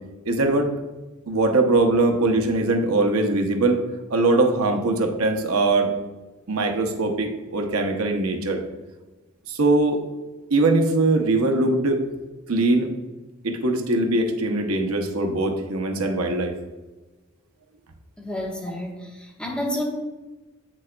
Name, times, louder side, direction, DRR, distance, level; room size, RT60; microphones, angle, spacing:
voice 1, 0.3-0.7 1.3-3.8 4.1-5.9 6.5-8.6 9.5-10.0 10.5-12.0 12.5-12.9 13.4-16.5, right 2 dB, 85° right, 4 dB, 0.8 m, -21 dB
voice 2, 18.2-19.8, left 1 dB, 5° left, -3 dB, 1.2 m, -30 dB
8.6 x 6.2 x 2.2 m, 1.2 s
head